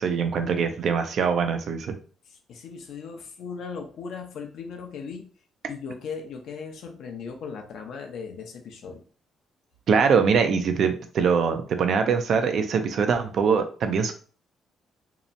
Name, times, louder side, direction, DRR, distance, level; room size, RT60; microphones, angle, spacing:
voice 1, 0.0-2.0 9.9-14.1, right 6 dB, 65° right, 7 dB, 0.4 m, -23 dB
voice 2, 2.3-5.3 5.7-9.0, left 5 dB, 75° left, 3 dB, 0.6 m, -38 dB
2.8 x 2.1 x 2.5 m, 0.42 s
cardioid pair, 90°, 0 cm